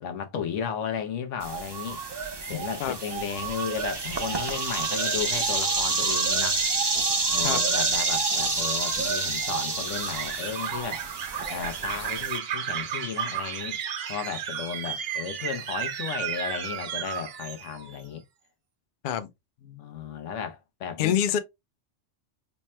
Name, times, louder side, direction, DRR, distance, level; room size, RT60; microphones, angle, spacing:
voice 1, 0.0-2.0 2.5-6.6 7.3-11.0 11.5-13.8 14.1-18.2 19.6-21.2, left 7 dB, 85° left, 1.0 m, -34 dB
sound 1, 1.4-12.4, right 3 dB, 35° right, 0.4 m, -29 dB
sound 2, 1.5-18.0, right 8 dB, 60° right, 0.8 m, -34 dB
voice 2, 2.5-3.0 7.4-7.6 19.0-19.3 21.0-21.4, left 9 dB, 60° left, 0.5 m, -26 dB
3.3 x 2.1 x 4.2 m
omnidirectional pair, 1.2 m